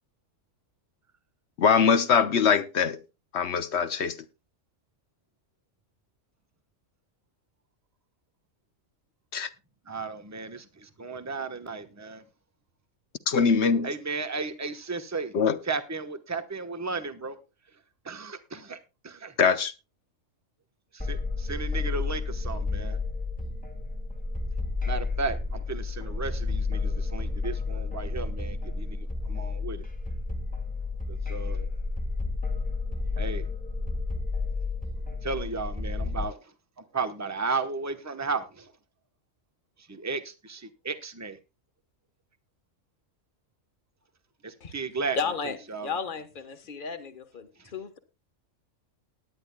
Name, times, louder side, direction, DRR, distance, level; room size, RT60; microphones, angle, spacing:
voice 1, 1.6-3.0 3.3-4.2 9.3-9.5 13.3-13.9 15.3-15.6 19.4-19.7, left 6 dB, 60° left, 1.0 m, -22 dB
voice 2, 9.9-12.2 13.8-15.4 15.6-17.4 18.0-18.8 19.0-19.3 20.9-23.0 24.9-29.8 31.1-31.7 33.2-33.5 35.2-38.7 39.8-41.4 44.4-45.2 45.7-46.0 47.6-47.7, right 4 dB, 15° right, 0.9 m, -34 dB
sound 1, 21.0-36.2, left 3 dB, 5° left, 1.5 m, -31 dB
voice 3, 45.1-45.6 45.8-48.0, left 5 dB, 40° left, 1.3 m, -33 dB
19.0 x 10.0 x 2.2 m
omnidirectional pair, 1.4 m